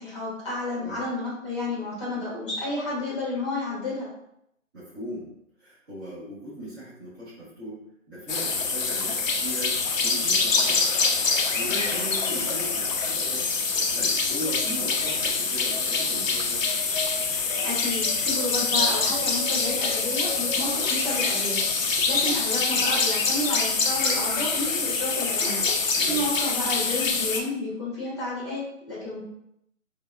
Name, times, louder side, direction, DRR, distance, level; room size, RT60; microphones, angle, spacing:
voice 1, 0.0-4.1 17.6-21.6 22.1-25.6 26.1-29.2, left 2 dB, 20° left, -8 dB, 0.9 m, -31 dB
voice 2, 4.7-5.3 5.6-7.8 8.1-10.8 11.2-13.4 13.7-16.6 25.9-26.3, equal, 15° right, -12 dB, 0.9 m, -38 dB
sound 1, 8.3-27.4, left 4 dB, 70° left, 0.6 m, -25 dB
3.6 x 2.2 x 2.3 m, 0.77 s
figure-of-eight pair, 160°, 41 cm